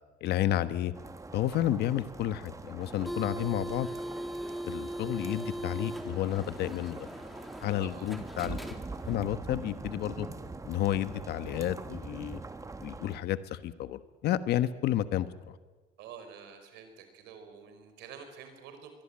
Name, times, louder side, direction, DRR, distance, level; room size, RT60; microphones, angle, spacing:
voice 1, 0.2-0.9 1.3-3.9 4.7-7.1 7.6-8.6 9.0-10.3 10.6-12.4 12.8-15.5, left 12 dB, 75° left, 13 dB, 1.3 m, -31 dB
sound 1, 0.9-13.2, right 3 dB, 20° right, 1.4 m, -43 dB
sound 2, 2.8-9.3, right 1 dB, ahead, 2.8 m, -40 dB
voice 2, 7.8-8.1 16.0-18.9, right 7 dB, 90° right, 8 dB, 5.0 m, -48 dB
23.5 x 23.0 x 8.8 m, 1.3 s
cardioid pair, 110°, 17 cm